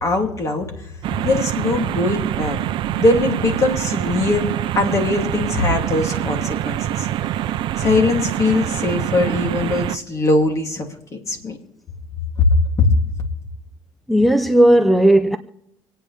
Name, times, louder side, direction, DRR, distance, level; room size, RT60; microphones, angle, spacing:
voice 1, 0.0-0.7 1.2-2.6 3.0-7.1 7.8-11.6 12.4-12.5 12.8-12.9, left 3 dB, 35° left, 2.9 m, -21 dB
sound 1, 1.0-10.0, right 12 dB, 65° right, 0.6 m, -25 dB
voice 2, 14.1-15.4, right 1 dB, ahead, 0.6 m, -14 dB
27.0 x 9.1 x 3.5 m
cardioid pair, 125°, 9 cm